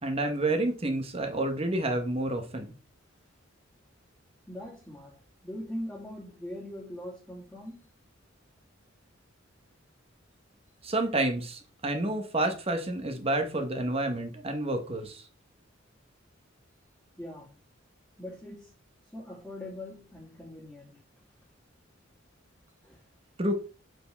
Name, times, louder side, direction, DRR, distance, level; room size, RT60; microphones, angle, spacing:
voice 1, 0.0-2.7 10.8-15.2 23.4-23.5, right 2 dB, 30° right, 1.1 m, -29 dB
voice 2, 4.5-5.2 5.4-7.9 17.2-17.6 18.2-18.7 19.1-21.0 22.8-23.0, left 1 dB, 5° left, 2.5 m, -41 dB
7.7 x 4.7 x 3.4 m
head